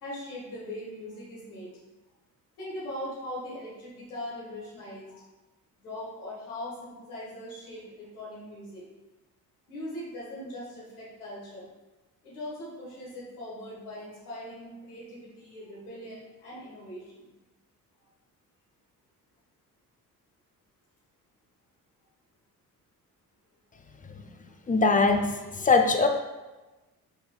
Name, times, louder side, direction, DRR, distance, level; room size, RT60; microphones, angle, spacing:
voice 1, 0.0-1.7 2.6-5.2 5.8-8.8 9.7-11.7 12.2-17.3 24.4-24.5, left 1 dB, 90° left, -6 dB, 1.5 m, -40 dB
voice 2, 24.7-26.1, left 4 dB, 20° left, 5 dB, 0.5 m, -22 dB
4.5 x 3.8 x 2.3 m, 1.1 s
hypercardioid pair, 50°, 44 cm